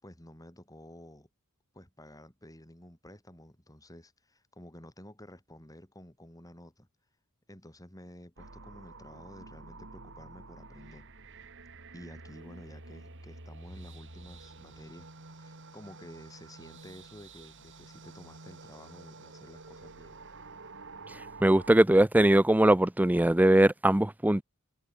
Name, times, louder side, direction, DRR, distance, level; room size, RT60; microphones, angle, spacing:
voice 1, 0.0-1.3 1.7-6.9 7.5-11.1 11.9-20.2, left 1 dB, 15° left, 6.2 m, -51 dB
sound 1, 8.4-21.8, right 3 dB, 55° right, 3.7 m, -49 dB
voice 2, 21.4-24.4, right 1 dB, 5° right, 0.5 m, -21 dB
head